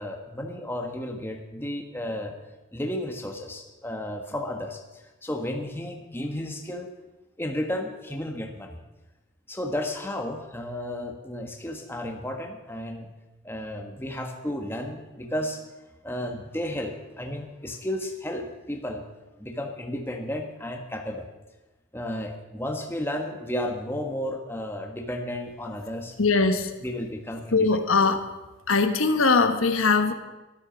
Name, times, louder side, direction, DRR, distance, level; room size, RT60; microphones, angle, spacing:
voice 1, 0.0-2.3 2.7-6.9 7.4-8.8 9.5-13.1 13.4-15.6 16.0-19.0 19.4-21.3 21.9-26.2 26.8-27.7, left 1 dB, 10° left, 3 dB, 1.3 m, -33 dB
voice 2, 26.2-26.7 27.5-28.3 28.7-30.1, left 4 dB, 80° left, 8 dB, 1.1 m, -21 dB
13.0 x 12.5 x 6.2 m, 1.1 s
head